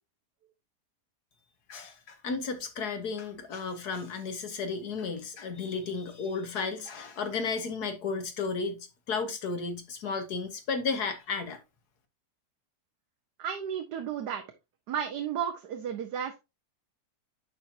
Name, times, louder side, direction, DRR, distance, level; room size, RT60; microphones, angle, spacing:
voice 1, 1.7-11.6, left 4 dB, 70° left, 1.9 m, -33 dB
voice 2, 13.4-14.4 14.9-16.4, right 8 dB, 80° right, 1.4 m, -33 dB
11.0 x 4.5 x 2.7 m
omnidirectional pair, 1.7 m